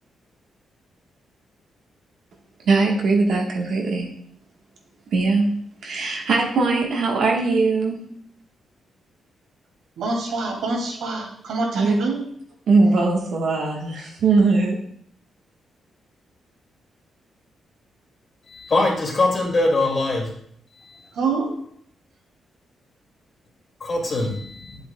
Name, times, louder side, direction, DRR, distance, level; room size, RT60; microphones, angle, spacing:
voice 1, 2.7-4.1 5.1-5.4 5.8-7.9 11.7-12.0 12.7-14.8, right 3 dB, 60° right, -1 dB, 1.2 m, -20 dB
voice 2, 10.0-12.2 21.1-21.5, right 3 dB, 80° right, -1 dB, 2.4 m, -26 dB
voice 3, 18.5-20.3 20.9-21.0 23.8-24.8, left 2 dB, 30° left, -1 dB, 2.1 m, -22 dB
9.3 x 7.8 x 2.2 m, 0.65 s
wide cardioid pair, 175°, 0 cm